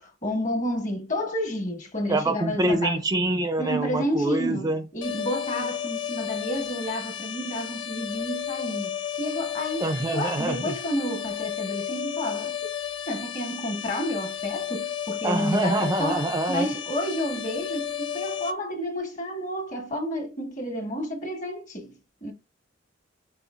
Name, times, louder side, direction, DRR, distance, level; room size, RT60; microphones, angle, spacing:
voice 1, 0.0-3.0 3.6-12.7 13.1-22.3, equal, 40° left, 1.4 m, -30 dB
voice 2, 2.1-4.8 9.8-10.7 15.2-16.7, right 2 dB, 20° right, 0.4 m, -25 dB
sound 1, 5.0-18.5, left 9 dB, 80° left, 0.5 m, -33 dB
5.5 x 3.6 x 2.4 m
head